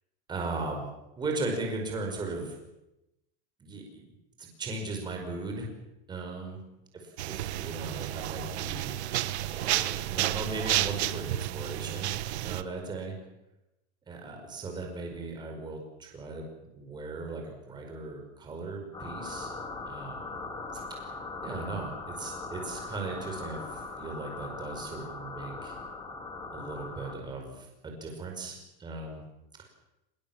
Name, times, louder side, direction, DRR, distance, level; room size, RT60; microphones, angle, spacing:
voice 1, 0.3-0.9 1.2-2.6 3.6-4.1 4.4-5.7 6.1-6.6 6.9-9.1 9.5-12.1 12.4-13.1 14.1-16.4 16.7-19.5 19.9-20.3 20.7-21.1 21.4-25.8 26.5-29.2 29.6-29.7, right 3 dB, 15° right, 2 dB, 5.2 m, -37 dB
sound 1, 7.2-12.6, right 14 dB, 85° right, 1.3 m, -31 dB
sound 2, 18.9-27.2, left 3 dB, 15° left, 3.5 m, -40 dB
25.0 x 22.0 x 7.5 m, 0.91 s
supercardioid pair, 175°, 32 cm